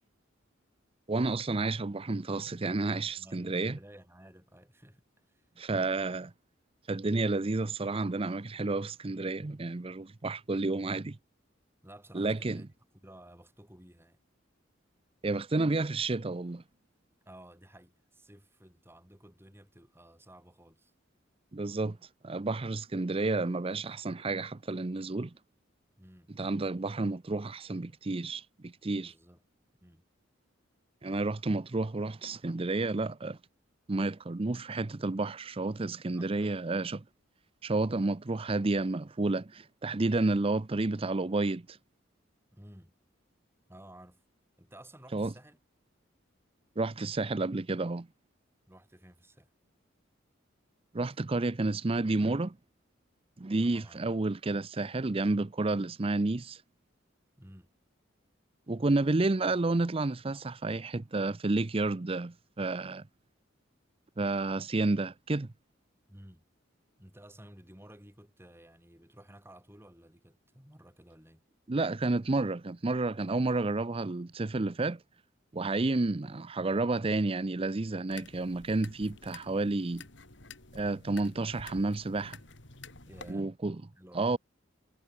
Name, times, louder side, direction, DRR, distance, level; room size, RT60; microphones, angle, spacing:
voice 1, 1.1-3.8 5.6-6.3 6.9-11.2 12.1-12.6 15.2-16.6 21.5-22.0 22.2-25.3 26.4-29.1 31.0-33.4 33.9-37.0 37.6-41.8 45.1-45.3 46.8-48.1 50.9-52.6 53.4-56.6 58.7-63.0 64.2-65.5 71.7-75.0 75.5-80.1 80.7-82.4 83.3-83.8 84.1-84.4, right 2 dB, 30° right, 0.6 m, -30 dB
voice 2, 3.2-5.0 5.3-5.5 11.8-12.7 13.0-14.2 17.3-20.9 26.0-26.3 29.0-29.4 29.8-30.0 36.1-36.7 42.5-42.9 43.7-44.2 44.6-45.6 48.7-49.5 53.6-54.0 57.4-57.7 66.1-66.4 67.0-71.4 83.1-83.5 83.9-84.4, right 1 dB, 10° right, 7.8 m, -54 dB
sound 1, 78.1-83.3, left 4 dB, 65° left, 4.1 m, -51 dB
head